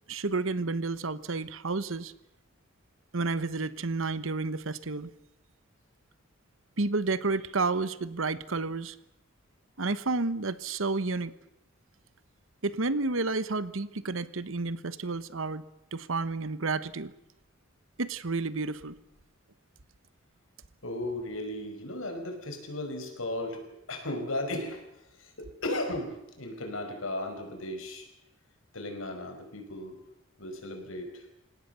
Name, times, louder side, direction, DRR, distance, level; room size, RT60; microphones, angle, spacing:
voice 1, 0.1-2.1 3.1-5.1 6.8-9.0 9.8-11.3 12.6-15.6 15.9-17.1 18.0-18.9, right 3 dB, 75° right, 15 dB, 1.1 m, -30 dB
voice 2, 20.8-24.8 25.2-28.1 28.7-30.0 30.4-31.3, left 1 dB, 80° left, 5 dB, 5.3 m, -36 dB
29.0 x 17.5 x 6.9 m, 0.89 s
head